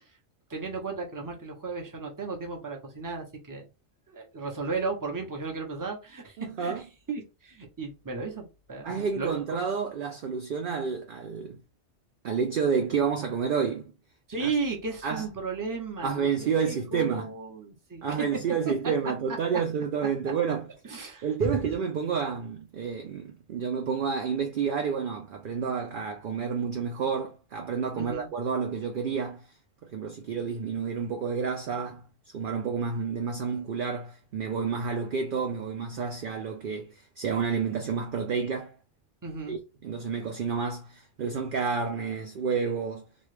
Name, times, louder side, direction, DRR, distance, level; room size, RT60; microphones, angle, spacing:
voice 1, 0.5-3.7 4.1-9.4 14.3-18.2 20.8-21.6 28.0-28.3 39.2-39.6, right 4 dB, 20° right, 0.7 m, -35 dB
voice 2, 6.4-6.8 8.8-11.6 12.2-13.9 14.4-14.5 15.0-15.2 16.0-17.3 18.0-20.7 21.2-29.5 29.9-32.0 32.3-38.7 39.5-43.0, right 6 dB, 60° right, 0.5 m, -30 dB
3.1 x 2.3 x 3.2 m
omnidirectional pair, 1.3 m